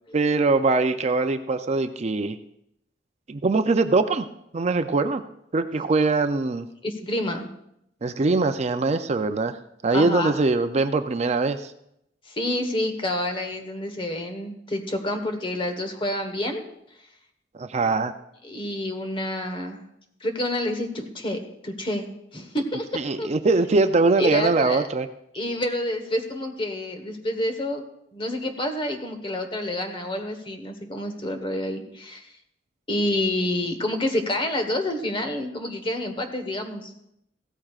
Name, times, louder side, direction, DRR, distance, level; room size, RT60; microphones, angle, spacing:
voice 1, 0.1-2.4 3.3-4.3 4.5-5.2 5.5-6.7 8.0-9.5 9.8-11.7 17.6-18.1 22.9-25.1, right 3 dB, 40° right, 9 dB, 0.5 m, -22 dB
voice 2, 6.8-7.5 9.9-10.3 12.3-16.6 18.4-19.8 20.2-22.1 22.3-23.3 24.2-24.8 25.3-27.8 28.1-32.2 32.9-36.9, left 1 dB, 30° left, 6 dB, 1.3 m, -28 dB
16.0 x 13.5 x 2.4 m, 0.78 s
head